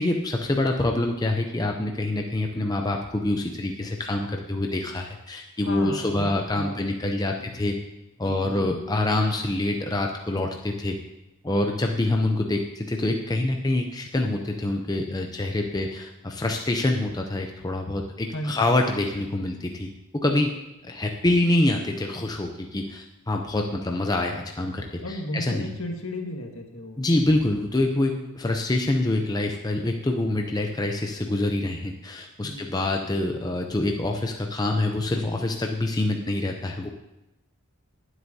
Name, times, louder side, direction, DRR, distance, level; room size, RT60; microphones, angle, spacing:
voice 1, 0.0-7.7 8.2-11.0 11.4-20.5 20.8-25.7 27.0-36.9, left 2 dB, 15° left, 3 dB, 0.5 m, -26 dB
voice 2, 5.6-6.3 6.5-6.9 7.3-7.7 8.2-9.0 18.3-19.1 20.3-20.6 25.0-27.0 28.1-28.3 32.4-32.7, left 1 dB, 65° left, 2 dB, 1.6 m, -35 dB
19.0 x 7.9 x 2.7 m, 0.97 s
head